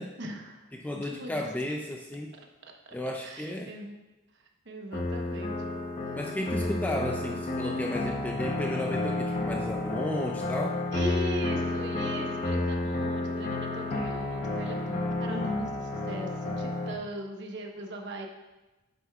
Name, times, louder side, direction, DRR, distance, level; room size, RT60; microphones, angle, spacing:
voice 1, 0.2-0.7 1.0-1.7 2.9-3.0 3.2-3.9 4.6-5.5 6.6-6.9 10.9-18.3, equal, 55° right, 2 dB, 1.0 m, -39 dB
voice 2, 0.7-2.4 2.9-3.7 6.1-10.8, left 1 dB, 10° left, 1 dB, 0.3 m, -33 dB
sound 1, 4.9-16.9, left 2 dB, 40° left, 0.8 m, -31 dB
9.3 x 7.9 x 2.4 m, 1.1 s
head